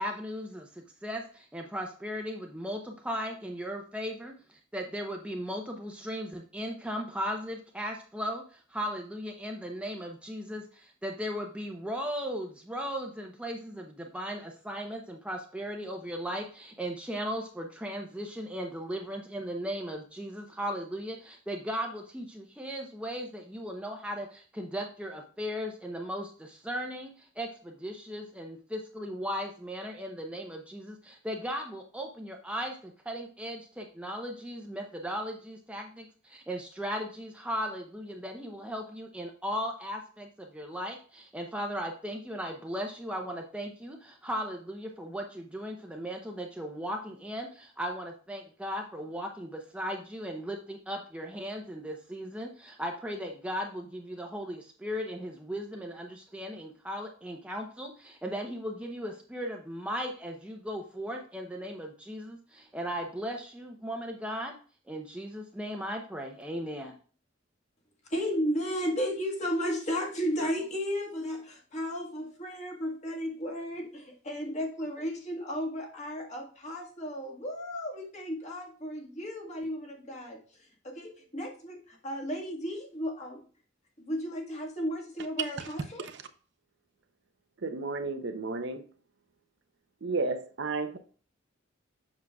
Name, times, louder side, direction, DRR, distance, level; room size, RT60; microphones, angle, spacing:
voice 1, 0.0-64.6 64.9-66.9, equal, 5° right, 0.7 m, -37 dB
voice 2, 68.1-80.4 80.8-83.4 84.0-86.1, equal, 35° left, 1.5 m, -34 dB
voice 3, 87.6-88.8 90.0-91.0, right 3 dB, 65° right, 0.7 m, -32 dB
7.4 x 6.3 x 2.3 m
head